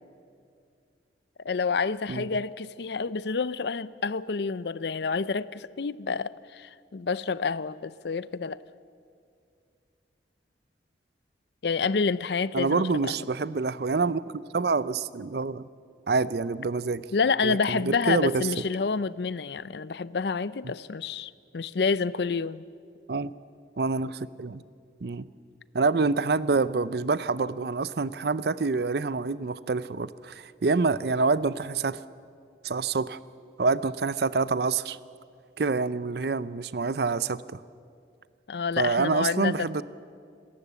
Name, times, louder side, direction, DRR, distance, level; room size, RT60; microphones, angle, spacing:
voice 1, 1.4-8.6 11.6-13.1 17.1-22.6 38.5-39.8, left 5 dB, 65° left, 0.5 m, -28 dB
voice 2, 12.5-15.7 16.1-17.1 17.4-18.5 23.1-23.3 23.8-24.6 25.0-25.3 25.7-32.0 32.6-33.2 33.6-35.0 35.6-37.4 38.8-39.8, right 4 dB, 60° right, 0.5 m, -27 dB
27.0 x 14.0 x 8.2 m
head